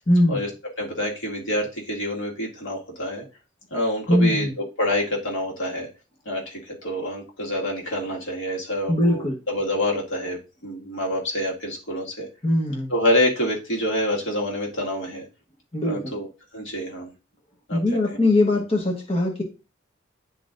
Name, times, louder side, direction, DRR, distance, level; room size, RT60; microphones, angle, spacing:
voice 1, 0.1-0.4 4.1-4.5 8.9-9.4 12.4-12.9 15.7-16.1 17.7-19.4, left 1 dB, 30° left, -1 dB, 1.1 m, -21 dB
voice 2, 0.8-3.2 3.7-4.5 4.8-5.9 6.3-12.3 12.9-15.3 15.8-16.3 16.5-17.1 17.7-17.8, left 1 dB, 80° left, -2 dB, 1.9 m, -27 dB
10.5 x 3.9 x 2.5 m, 0.32 s
head